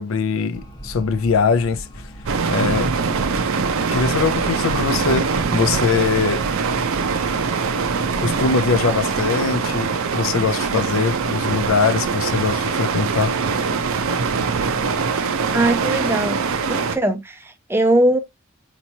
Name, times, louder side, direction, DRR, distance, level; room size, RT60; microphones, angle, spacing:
voice 1, 0.0-2.0 2.5-2.9 3.9-6.4 8.2-13.3, left 5 dB, 75° left, 0.4 m, -22 dB
sound 1, 0.5-8.0, right 1 dB, 20° left, 0.6 m, -39 dB
sound 2, 2.3-17.0, right 5 dB, 80° right, 0.5 m, -22 dB
voice 2, 15.5-16.4 16.7-18.2, right 1 dB, 10° right, 0.3 m, -20 dB
4.3 x 2.9 x 2.6 m
head